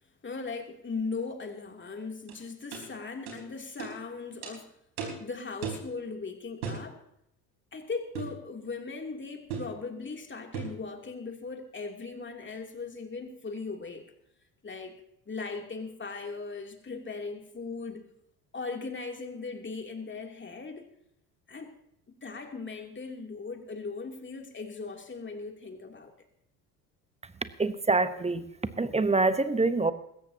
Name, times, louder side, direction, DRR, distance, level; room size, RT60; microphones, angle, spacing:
voice 1, 0.2-4.7 5.2-7.0 7.7-14.0 14.6-14.9 15.3-18.0 18.5-20.8 21.5-21.7 22.2-26.1, left 4 dB, 25° left, 3 dB, 3.0 m, -38 dB
sound 1, 2.3-2.4 2.7-2.9 3.3-3.4 3.8-3.9 4.4-4.5 5.0-5.2 5.6-5.9 6.6-6.9 8.1-8.4 9.5-9.7 10.5-10.8, right 6 dB, 70° right, 4.4 m, -36 dB
voice 2, 27.2-28.5 28.8-29.9, right 3 dB, 15° right, 13 dB, 1.0 m, -26 dB
20.5 x 17.0 x 2.9 m, 0.77 s
figure-of-eight pair, 60°, 47 cm